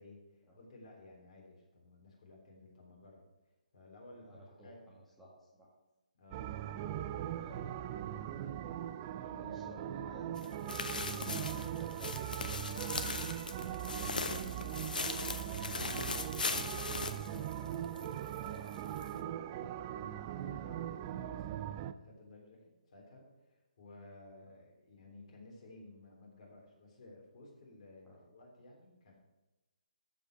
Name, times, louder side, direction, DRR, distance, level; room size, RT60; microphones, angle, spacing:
voice 1, 0.0-3.2 3.7-4.8 6.2-7.7 8.4-8.5 9.2-9.6 19.1-19.4 19.7-29.1, left 2 dB, 45° left, -1 dB, 3.6 m, -56 dB
voice 2, 4.2-5.7 7.3-7.6 9.3-18.7 24.4-24.5 28.0-28.2, equal, 5° left, -8 dB, 1.6 m, -55 dB
sound 1, 6.3-21.9, right 11 dB, 25° right, 0.3 m, -40 dB
sound 2, 10.4-18.1 18.4-18.5 19.0-19.1, left 4 dB, 80° left, 1.0 m, -39 dB
13.5 x 5.3 x 4.8 m, 1.0 s
hypercardioid pair, 160°, 4 cm